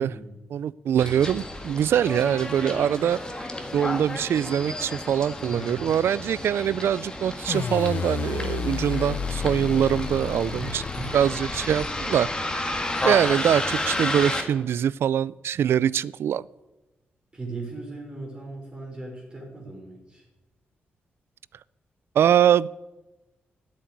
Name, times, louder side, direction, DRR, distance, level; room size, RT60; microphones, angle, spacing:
voice 1, 0.0-0.4 5.5-5.8 10.6-11.3 17.3-20.2, right 3 dB, 25° right, -1 dB, 3.7 m, -37 dB
voice 2, 0.5-10.8 11.1-12.7 13.0-16.5 22.2-22.7, right 9 dB, 80° right, 22 dB, 0.3 m, -23 dB
Bus, 1.0-14.4, left 1 dB, 20° left, 1.8 m, -32 dB
sound 1, 7.5-12.5, left 7 dB, 55° left, 0.4 m, -31 dB
13.0 x 7.5 x 9.6 m, 1.1 s
wide cardioid pair, 120°, 4 cm